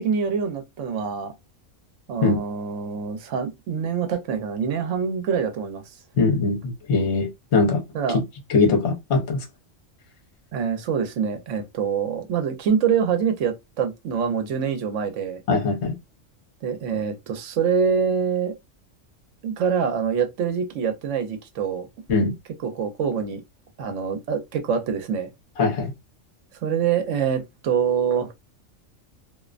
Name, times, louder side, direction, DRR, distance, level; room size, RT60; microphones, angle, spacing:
voice 1, 0.0-1.3 2.1-5.8 7.9-8.2 10.5-15.4 16.6-18.6 19.4-21.9 22.6-23.4 23.8-25.3 26.6-28.3, right 7 dB, 70° right, 1.0 m, -25 dB
voice 2, 6.2-7.8 8.1-8.2 8.5-9.4 15.5-16.0 22.1-22.3 25.6-25.9, left 3 dB, 60° left, 1.1 m, -21 dB
2.5 x 2.0 x 2.4 m
omnidirectional pair, 1.4 m